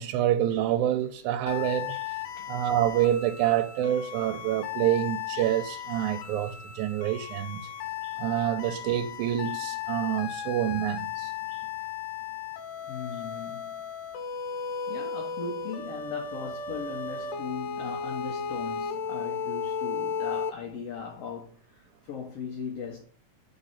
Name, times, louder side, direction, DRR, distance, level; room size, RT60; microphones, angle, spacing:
voice 1, 0.0-2.2 2.5-7.7 8.0-11.6, right 11 dB, 80° right, 1.9 m, -27 dB
sound 1, 1.5-20.5, left 7 dB, 85° left, 2.2 m, -35 dB
voice 2, 12.9-13.8 14.9-23.0, left 6 dB, 65° left, 1.7 m, -38 dB
4.3 x 4.0 x 5.5 m
omnidirectional pair, 3.6 m